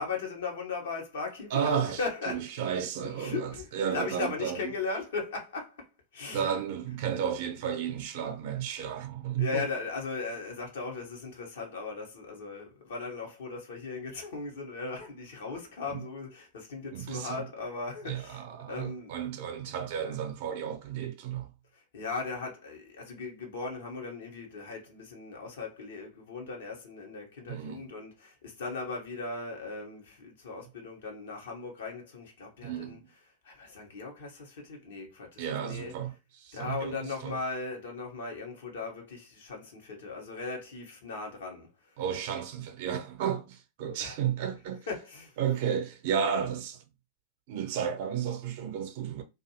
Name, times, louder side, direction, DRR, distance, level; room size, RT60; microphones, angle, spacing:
voice 1, 0.0-2.4 3.2-5.9 6.1-6.6 9.4-19.1 19.9-20.2 21.7-33.0 33.4-35.9 36.5-41.7 44.0-44.1 44.9-45.4, left 4 dB, 60° left, 1.0 m, -38 dB
voice 2, 1.5-2.0 2.3-4.7 6.3-9.7 15.9-16.0 16.9-17.5 18.0-21.5 27.5-27.8 32.6-33.1 35.4-37.4 42.0-44.9 45.4-46.8 47.5-49.2, right 8 dB, 50° right, 0.7 m, -33 dB
2.6 x 2.5 x 2.9 m
figure-of-eight pair, 90°, 0 cm